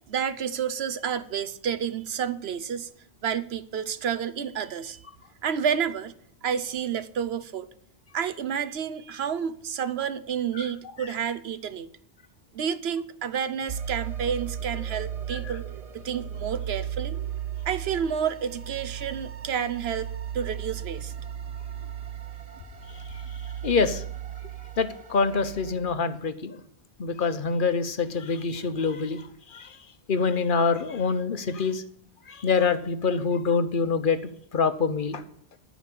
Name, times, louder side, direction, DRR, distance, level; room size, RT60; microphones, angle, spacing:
voice 1, 0.1-2.9 3.2-5.0 5.4-6.1 6.4-7.7 8.1-11.9 12.5-15.7 15.9-17.2 17.7-21.1, right 7 dB, 75° right, 13 dB, 1.0 m, -30 dB
sound 1, 13.7-25.7, right 9 dB, 40° right, 0.8 m, -36 dB
voice 2, 23.6-24.0 24.8-26.6 27.0-29.8 30.1-31.8 32.3-34.2 34.5-35.2, left 5 dB, 55° left, 11 dB, 1.0 m, -25 dB
14.5 x 5.1 x 8.5 m, 0.64 s
omnidirectional pair, 1.1 m